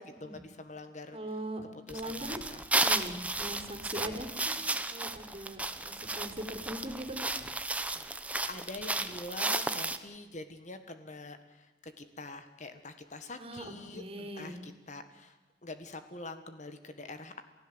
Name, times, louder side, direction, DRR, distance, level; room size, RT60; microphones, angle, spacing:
voice 1, 0.0-1.2 1.7-2.6 7.9-8.1 8.5-17.4, left 2 dB, 40° left, 9 dB, 1.7 m, -45 dB
voice 2, 1.1-2.4 2.8-4.6 4.9-5.6 5.8-7.3 13.4-14.6, right 1 dB, 35° right, 5 dB, 3.7 m, -40 dB
sound 1, 1.9-10.0, right 2 dB, 10° right, 1.0 m, -33 dB
29.0 x 16.0 x 8.0 m, 1.2 s
head